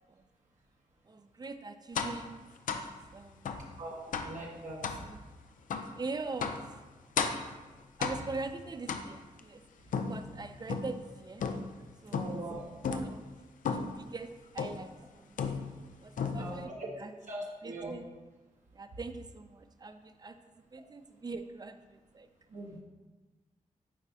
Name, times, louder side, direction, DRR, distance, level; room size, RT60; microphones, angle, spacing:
voice 1, 1.0-2.4 2.7-3.6 4.9-5.2 5.9-6.6 7.2-7.4 8.0-9.6 10.1-11.4 12.0-13.3 13.6-15.6 16.0-16.7 17.0-17.1 17.6-18.1 18.7-20.4 20.7-22.3, right 3 dB, 30° right, 9 dB, 0.5 m, -42 dB
sound 1, 1.9-2.2 2.7-2.9 3.4-3.7 4.1-4.4 4.8-5.0 5.7-5.9 6.4-6.7 7.2-7.5 8.0-8.4 8.9-9.4 9.9-11.0 11.4-11.8 12.1-12.5 12.8-13.1 13.6-14.0 14.6-14.9 15.4-15.9 16.2-16.6, left 5 dB, 80° left, 0.5 m, -34 dB
voice 2, 3.8-4.8 12.1-12.6 16.4-16.8 17.3-17.9 22.5-22.8, right 1 dB, 65° right, -3 dB, 1.0 m, -41 dB
8.2 x 4.4 x 2.7 m, 1.2 s
cardioid pair, 70°, 13 cm